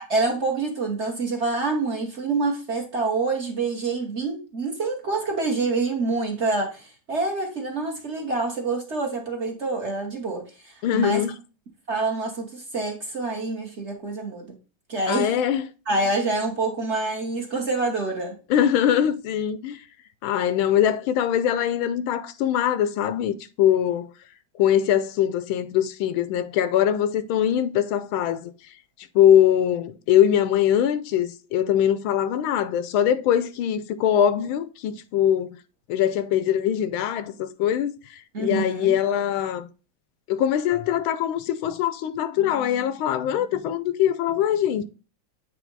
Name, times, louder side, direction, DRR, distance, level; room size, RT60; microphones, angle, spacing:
voice 1, 0.0-11.2 11.9-14.5 14.9-15.4 15.9-18.4 38.3-39.0, right 3 dB, 40° right, 1.3 m, -27 dB
voice 2, 10.8-11.4 15.1-15.6 18.5-19.8 20.2-24.1 24.6-28.5 29.1-35.6 35.9-39.7 40.3-44.8, left 10 dB, 85° left, 1.4 m, -22 dB
8.4 x 3.3 x 3.9 m
omnidirectional pair, 2.2 m